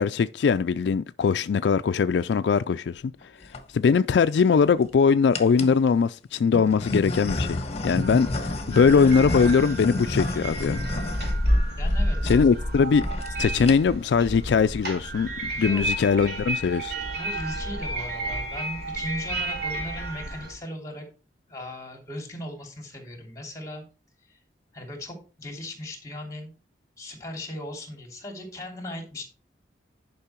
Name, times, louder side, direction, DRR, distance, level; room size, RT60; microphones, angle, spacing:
voice 1, 0.0-3.0 3.7-10.8 12.2-13.0 13.4-16.9, left 5 dB, 70° left, 0.3 m, -21 dB
sound 1, 3.2-3.6 4.3-4.9 5.3-5.8 6.5-11.9 12.2-12.4 12.7-12.8 13.0-13.3 13.6-14.1, left 2 dB, 35° left, 1.3 m, -31 dB
sound 2, 8.0-20.5, equal, 60° right, 3.1 m, -30 dB
voice 2, 11.8-12.5 15.5-16.3 17.2-21.0 21.5-23.8 24.3-24.4 24.7-26.5 27.0-29.2, equal, 20° left, 2.9 m, -38 dB
10.5 x 5.4 x 4.4 m
head